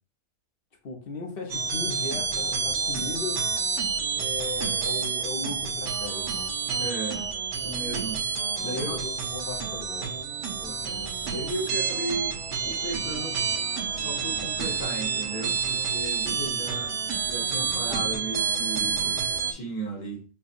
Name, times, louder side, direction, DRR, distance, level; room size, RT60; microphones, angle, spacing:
voice 1, 0.8-3.4 4.1-6.5 8.6-10.1 16.4-16.7 17.9-18.1, left 3 dB, 45° left, 0.9 m, -37 dB
sound 1, 1.5-19.5, right 6 dB, 60° right, 0.9 m, -29 dB
voice 2, 6.8-7.3 7.5-8.3 8.6-9.0 10.5-12.4 12.6-13.4 13.9-16.9 17.3-20.2, right 2 dB, 70° left, 1.8 m, -35 dB
5.5 x 2.3 x 2.5 m
omnidirectional pair, 1.6 m